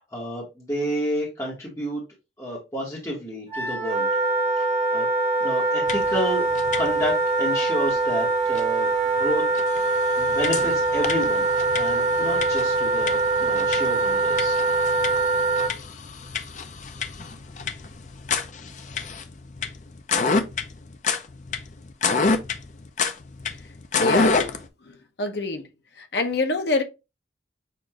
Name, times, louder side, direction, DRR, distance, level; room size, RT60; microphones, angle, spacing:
voice 1, 0.0-2.0 2.4-4.1 4.6-5.1 5.4-6.5 6.8-9.4 10.2-11.4 11.7-14.6, equal, 15° left, 1.3 m, -30 dB
Wind instrument woodwind instrument, 3.5-15.7, right 3 dB, 35° right, 1.0 m, -23 dB
sound 1, 5.9-6.2 6.5-7.1 7.5-7.6 8.5-8.6 9.2-9.3 9.5-24.7, left 4 dB, 40° left, 0.5 m, -29 dB
voice 2, 24.0-24.4 24.9-25.7 26.0-26.8, left 2 dB, 65° left, 0.8 m, -25 dB
6.7 x 2.6 x 2.9 m
head